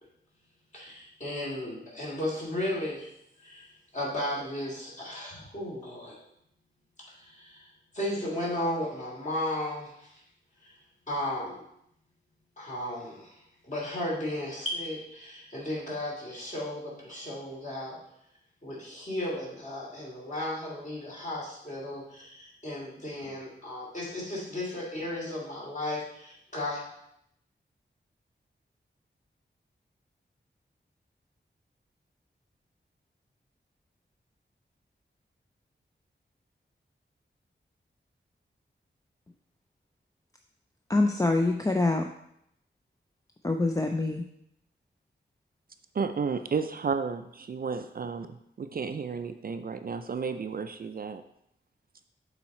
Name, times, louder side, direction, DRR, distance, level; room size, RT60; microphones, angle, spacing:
voice 1, 0.7-3.1 3.4-6.2 7.1-7.7 7.9-10.2 10.6-10.7 11.1-11.6 12.6-18.0 18.6-26.8, left 1 dB, 40° left, -5 dB, 2.8 m, -35 dB
voice 2, 40.9-42.1 43.4-44.2, left 2 dB, 15° left, 4 dB, 0.4 m, -25 dB
voice 3, 46.0-51.2, right 5 dB, 50° right, 9 dB, 0.4 m, -32 dB
7.1 x 4.1 x 4.3 m, 0.75 s
wide cardioid pair, 85°, 20 cm